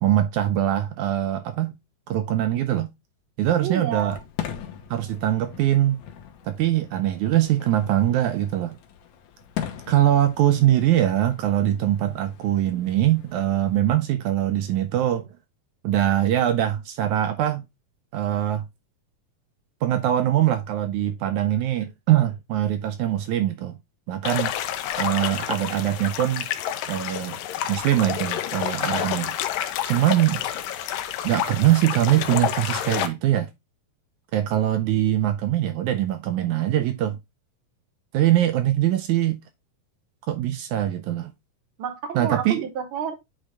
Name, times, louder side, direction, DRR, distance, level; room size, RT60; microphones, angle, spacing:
voice 1, 0.0-1.7 2.1-2.9 3.4-4.2 4.9-6.0 6.5-8.8 9.9-15.3 15.8-17.6 18.1-18.7 19.8-23.7 24.1-24.5 25.0-26.5 26.9-27.4 27.7-29.4 29.8-30.4 31.2-33.5 34.3-37.2 38.1-39.4 40.3-41.3 42.2-42.6, right 12 dB, 80° right, 1.8 m, -22 dB
voice 2, 3.6-4.2 41.8-43.1, right 8 dB, 65° right, 1.3 m, -30 dB
Fireworks, 4.0-13.9, left 9 dB, 65° left, 2.2 m, -40 dB
sound 1, 24.2-33.1, left 11 dB, 85° left, 2.4 m, -29 dB
8.8 x 3.7 x 3.3 m
omnidirectional pair, 3.9 m